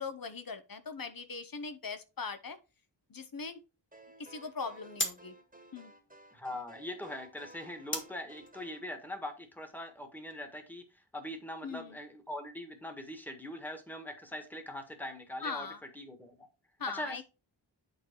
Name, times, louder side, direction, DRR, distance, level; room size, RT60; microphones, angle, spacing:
voice 1, 0.0-2.6 3.1-3.6 4.2-5.3 5.7-5.9 11.6-12.0 15.4-15.8 16.8-17.2, left 5 dB, 50° left, 1.0 m, -40 dB
sound 1, 1.8-10.4, left 1 dB, 25° left, 1.5 m, -44 dB
sound 2, 3.9-8.8, right 1 dB, 20° right, 1.5 m, -56 dB
voice 2, 6.3-15.7 15.9-16.5 16.9-17.2, left 1 dB, 5° left, 1.6 m, -42 dB
9.2 x 4.0 x 4.5 m
wide cardioid pair, 110°, 45 cm